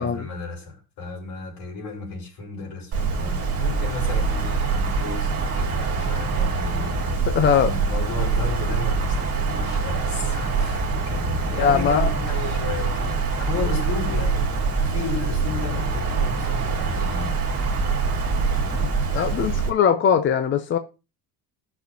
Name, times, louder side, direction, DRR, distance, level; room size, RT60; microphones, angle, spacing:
voice 1, 0.0-17.5 18.6-19.6, left 4 dB, 65° left, 4.4 m, -34 dB
Wind, 2.9-19.7, right 4 dB, 35° right, 2.3 m, -24 dB
voice 2, 7.3-7.7 11.6-12.1 19.1-20.8, left 7 dB, 30° left, 0.4 m, -20 dB
17.0 x 6.2 x 2.7 m
cardioid pair, 160°, 43 cm